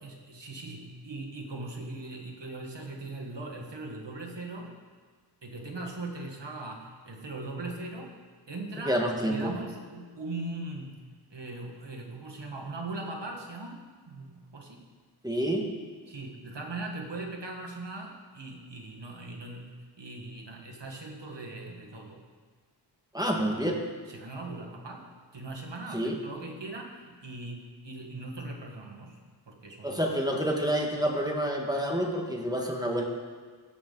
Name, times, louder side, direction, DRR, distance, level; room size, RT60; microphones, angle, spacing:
voice 1, 0.0-4.7 5.4-8.2 8.5-14.8 16.1-22.2 24.1-25.1 25.3-29.2 29.5-30.1, right 2 dB, 75° right, 0 dB, 1.6 m, -40 dB
voice 2, 8.9-9.5 15.2-15.7 23.1-23.8 25.9-26.2 29.8-33.0, equal, 10° right, 0 dB, 1.7 m, -28 dB
17.0 x 7.2 x 4.0 m, 1.5 s
wide cardioid pair, 45°, 42 cm